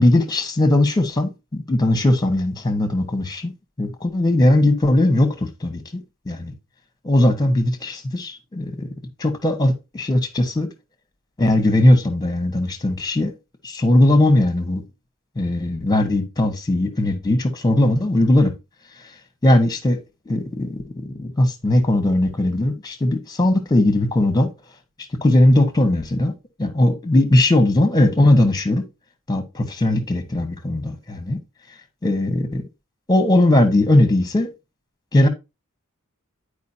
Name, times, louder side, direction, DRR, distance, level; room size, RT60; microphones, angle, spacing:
voice 1, 0.0-3.5 3.8-5.8 6.3-6.5 7.0-8.9 9.2-10.7 11.4-13.3 13.6-14.8 15.4-18.5 19.4-20.0 20.3-24.5 25.2-26.3 26.6-28.8 29.3-31.4 32.0-32.6 33.1-34.5 35.1-35.3, left 1 dB, 20° left, 1.4 m, -18 dB
10.5 x 4.9 x 2.8 m
head